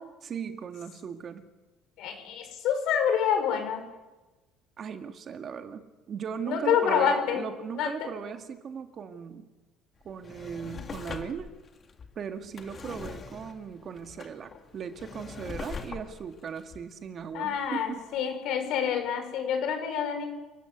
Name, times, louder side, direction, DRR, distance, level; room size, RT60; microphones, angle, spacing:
voice 1, 0.2-1.5 4.8-9.5 10.0-11.5 12.2-18.0, right 7 dB, 40° right, 7 dB, 1.9 m, -38 dB
voice 2, 2.0-3.8 6.5-7.4 7.7-8.1 17.3-20.3, left 8 dB, 65° left, 6 dB, 5.9 m, -27 dB
Drawer open or close, 10.0-17.7 18.2-18.3, left 5 dB, 30° left, 2.2 m, -43 dB
28.5 x 12.5 x 9.6 m, 1.1 s
cardioid pair, 115°, 0 cm